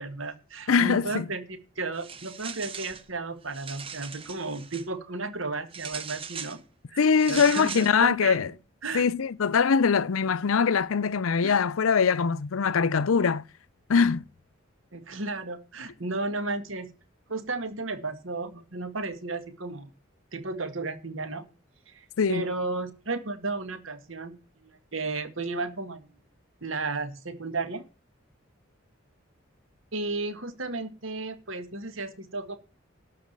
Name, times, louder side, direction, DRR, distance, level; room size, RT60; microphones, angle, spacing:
voice 1, 0.0-6.6 6.9-8.5 8.8-9.1 11.4-11.6 14.9-16.9 17.3-19.9 20.3-21.5 21.9-24.4 24.6-26.1 26.6-27.9 29.9-32.5, right 3 dB, 75° right, 1.8 m, -34 dB
voice 2, 0.7-1.3 7.0-8.5 8.9-13.4 13.9-14.2 22.2-22.4, left 6 dB, 90° left, 0.6 m, -22 dB
sound 1, 1.9-3.0 3.4-4.9 5.7-6.6 7.2-7.9, right 6 dB, 25° right, 1.0 m, -39 dB
12.5 x 4.9 x 7.5 m
head